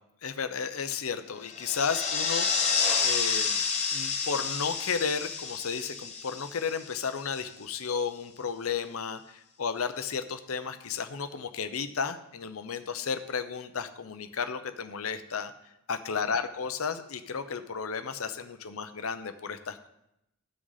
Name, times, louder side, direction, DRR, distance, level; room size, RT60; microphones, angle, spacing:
voice 1, 0.2-3.6 3.9-15.5 15.9-19.9, left 6 dB, 80° left, 10 dB, 0.7 m, -33 dB
sound 1, 1.5-7.3, left 5 dB, 35° left, 1.1 m, -29 dB
14.0 x 6.2 x 4.1 m, 0.83 s
head